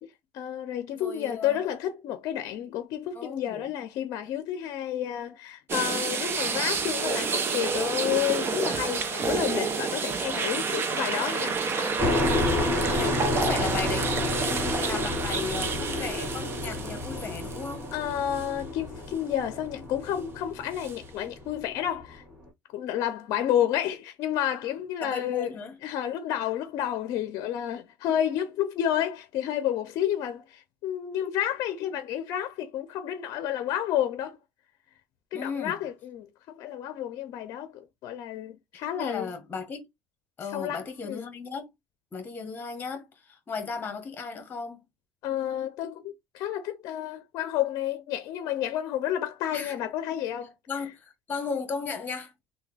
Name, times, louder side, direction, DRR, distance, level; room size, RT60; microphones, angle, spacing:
voice 1, 0.3-11.6 12.9-13.1 17.9-22.2 22.7-25.5 25.8-34.4 35.3-39.3 40.5-41.3 45.2-50.5, left 11 dB, 60° left, 0.5 m, -30 dB
voice 2, 0.9-1.6 3.1-3.6 11.7-12.4 12.9-17.8 25.0-25.8 35.3-35.8 38.7-39.9 40.4-41.7 42.1-44.8 49.5-49.8 50.7-52.3, left 5 dB, 30° left, 1.3 m, -36 dB
sound 1, 5.7-17.9 18.3-18.5 20.8-20.9, right 5 dB, 35° right, 0.7 m, -29 dB
sound 2, 12.0-22.1, left 2 dB, 10° right, 2.1 m, -30 dB
3.4 x 2.2 x 3.3 m
cardioid pair, 110°, 7 cm